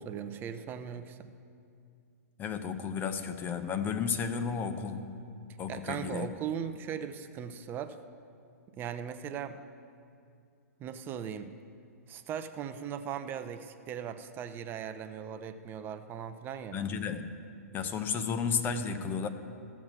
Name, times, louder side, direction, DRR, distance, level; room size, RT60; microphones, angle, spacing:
voice 1, 0.0-1.3 5.7-8.0 8.8-9.6 10.8-11.5 12.1-16.8, right 8 dB, 25° right, 9 dB, 0.6 m, -38 dB
voice 2, 2.4-5.1 5.6-6.3 16.7-17.3 17.7-19.3, left 6 dB, 20° left, 9 dB, 0.7 m, -33 dB
14.5 x 7.2 x 6.0 m, 2.4 s
hypercardioid pair, 130°, 9 cm